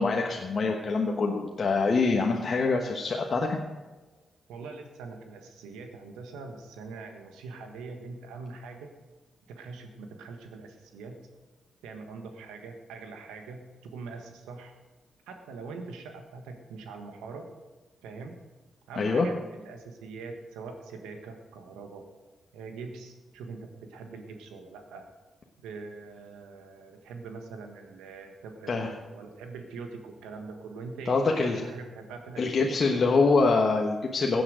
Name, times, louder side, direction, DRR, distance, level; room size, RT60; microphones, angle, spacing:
voice 1, 0.0-3.6 19.0-19.3 28.7-28.9 31.1-31.6 32.4-34.4, left 4 dB, 55° left, 1 dB, 1.2 m, -25 dB
voice 2, 4.5-8.9 9.5-11.2 11.8-14.7 15.3-17.5 18.0-18.4 18.9-22.0 22.5-25.0 25.6-33.0, right 4 dB, 85° right, 5 dB, 1.5 m, -43 dB
16.0 x 8.6 x 5.1 m, 1.2 s
hypercardioid pair, 40°, 0 cm